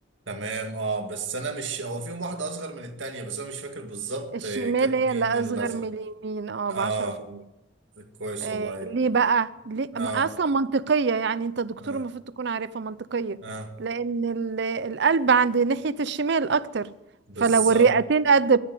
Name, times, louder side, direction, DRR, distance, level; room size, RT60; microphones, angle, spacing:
voice 1, 0.3-5.9 6.7-7.2 8.0-8.9 9.9-10.3 11.8-12.0 13.4-13.7 17.3-17.9, right 3 dB, 80° right, 2.1 m, -33 dB
voice 2, 4.6-7.1 8.4-13.4 13.8-16.9 17.4-18.6, right 5 dB, 65° right, 0.6 m, -24 dB
14.0 x 11.0 x 9.2 m
head